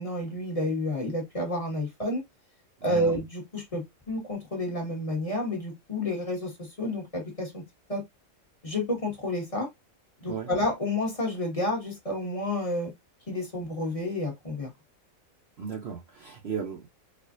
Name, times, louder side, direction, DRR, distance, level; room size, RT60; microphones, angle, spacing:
voice 1, 0.0-2.2 2.8-6.5 6.8-7.6 7.9-8.0 8.6-9.7 10.2-12.9 13.3-14.7, left 1 dB, 25° left, 1.2 m, -30 dB
voice 2, 2.8-3.1 10.2-10.5 15.6-16.9, right 6 dB, 60° right, 0.7 m, -36 dB
4.3 x 2.4 x 2.4 m
omnidirectional pair, 1.5 m